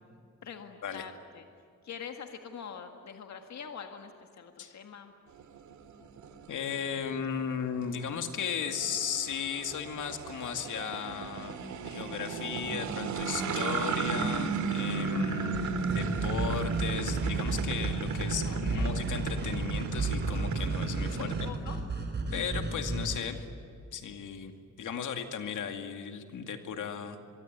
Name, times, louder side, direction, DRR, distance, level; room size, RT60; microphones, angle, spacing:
voice 1, 0.4-1.5 1.8-5.1 18.4-19.0 21.1-21.8, left 7 dB, 65° left, 5 dB, 1.8 m, -44 dB
sound 1, 5.4-21.5, right 5 dB, 75° right, 2.1 m, -34 dB
voice 2, 6.5-15.6 15.9-21.5 22.3-23.5 23.9-24.5 24.8-27.2, left 7 dB, 85° left, 6 dB, 2.3 m, -36 dB
sound 2, 15.5-23.2, right 3 dB, 35° right, 4.6 m, -33 dB
24.0 x 24.0 x 9.6 m, 2.5 s
cardioid pair, 120°, 30 cm